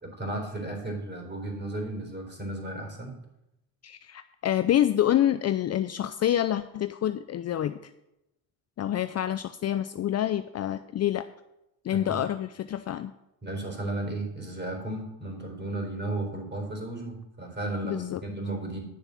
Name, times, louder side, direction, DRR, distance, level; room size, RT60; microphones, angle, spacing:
voice 1, 0.0-3.1 11.9-12.2 13.4-18.8, right 2 dB, 25° right, 3 dB, 4.2 m, -34 dB
voice 2, 3.8-7.8 8.8-11.3 11.8-13.1 17.8-18.2, left 11 dB, 40° left, 11 dB, 0.5 m, -27 dB
10.0 x 6.8 x 5.8 m, 0.87 s
supercardioid pair, 70°, 42 cm